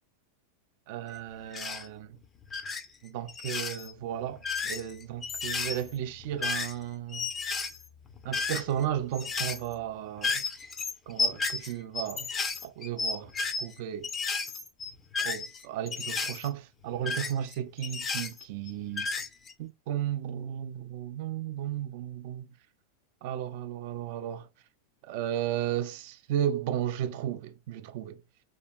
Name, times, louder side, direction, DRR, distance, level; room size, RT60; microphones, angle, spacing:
voice 1, 0.9-2.2 3.0-7.3 8.2-10.4 11.1-12.3 12.6-13.3 13.6-14.1 15.2-19.1 19.6-22.5 23.2-24.5 25.0-28.2, right 11 dB, 50° right, 0.4 m, -34 dB
sound 1, 1.5-1.9 2.4-2.8 3.3-3.9 4.3-6.8 7.1-8.8 9.1-9.7 10.2-13.7 14.0-16.5 17.0-18.7 19.0-19.5, left 4 dB, 20° left, 0.5 m, -33 dB
3.4 x 2.8 x 2.3 m
figure-of-eight pair, 90°, 0 cm